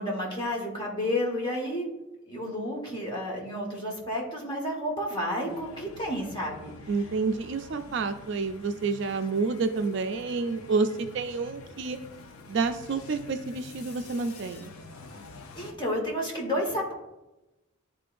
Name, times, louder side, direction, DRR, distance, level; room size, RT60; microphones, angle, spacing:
voice 1, 0.0-1.9 2.3-6.7 15.5-16.9, left 1 dB, 20° left, -2 dB, 1.3 m, -31 dB
sound 1, 5.5-15.7, left 3 dB, 90° left, 0.6 m, -48 dB
voice 2, 6.9-12.0 12.5-14.7, right 4 dB, 55° right, 8 dB, 0.4 m, -29 dB
10.5 x 3.7 x 2.5 m, 0.99 s
head